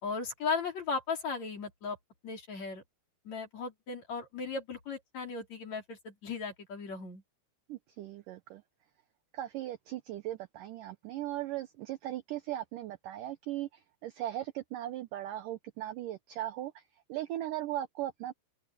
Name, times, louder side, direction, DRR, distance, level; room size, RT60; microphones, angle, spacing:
voice 1, 0.0-2.0 2.2-2.8 3.2-7.2, left 4 dB, 40° left, 5.2 m, -36 dB
voice 2, 7.7-8.6 9.3-13.7 14.0-16.8 17.1-18.3, right 13 dB, 80° right, 1.9 m, -38 dB
open air
omnidirectional pair, 4.8 m